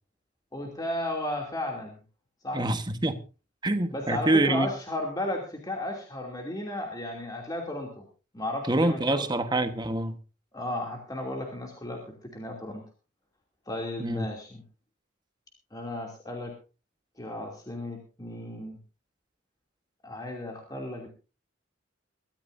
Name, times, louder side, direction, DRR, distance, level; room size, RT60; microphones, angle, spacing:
voice 1, 0.5-1.9 2.4-2.6 3.9-8.0 8.3-9.3 10.5-12.8 13.7-14.6 15.7-16.5 17.2-18.8 20.0-21.1, left 1 dB, 20° left, 0 dB, 2.8 m, -34 dB
voice 2, 2.5-3.2 3.6-4.7 8.7-10.2 14.0-14.3, right 2 dB, 20° right, 8 dB, 1.3 m, -26 dB
23.5 x 13.5 x 2.7 m, 0.32 s
head